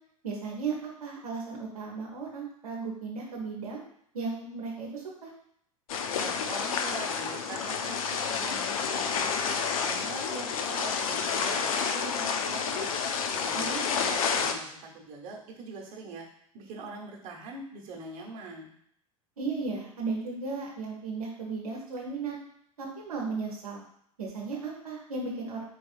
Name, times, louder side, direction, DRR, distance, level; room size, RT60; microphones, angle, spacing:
voice 1, 0.2-3.8 4.1-5.3 13.5-13.8 19.4-22.4 22.8-23.8 24.2-25.6, right 4 dB, 80° right, -3 dB, 0.8 m, -35 dB
sound 1, 5.9-14.5, left 6 dB, 70° left, 0.5 m, -30 dB
voice 2, 6.1-12.9 13.3-14.8 15.0-16.3 16.5-18.7, right 3 dB, 50° right, -1 dB, 1.1 m, -42 dB
4.2 x 3.4 x 2.4 m, 0.70 s
figure-of-eight pair, 85°, 19 cm